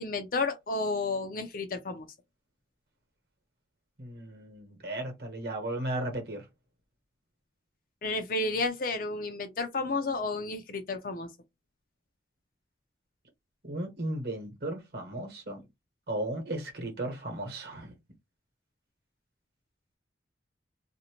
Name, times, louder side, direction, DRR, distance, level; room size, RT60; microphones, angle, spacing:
voice 1, 0.0-2.1 8.0-11.3, left 3 dB, 50° left, 0.5 m, -31 dB
voice 2, 4.0-6.4 13.6-15.6 16.1-17.9, right 1 dB, 55° right, 0.9 m, -35 dB
2.6 x 2.0 x 2.9 m
head